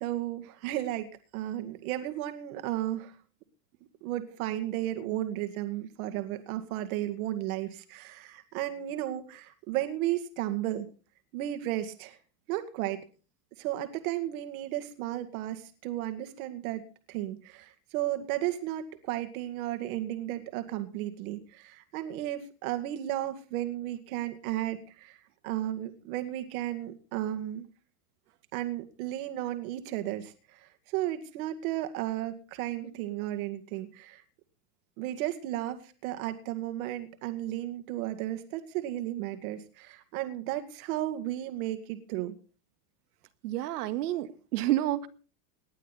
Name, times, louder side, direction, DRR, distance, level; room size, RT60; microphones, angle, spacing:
voice 1, 0.0-3.2 4.0-10.9 11.3-12.2 12.5-13.0 13.6-25.2 25.4-27.7 28.5-34.2 35.0-42.3, right 14 dB, 65° right, 8 dB, 2.2 m, -34 dB
voice 2, 43.4-45.1, right 14 dB, 85° right, 9 dB, 1.8 m, -29 dB
19.5 x 11.5 x 4.2 m, 0.38 s
supercardioid pair, 150°, 45 cm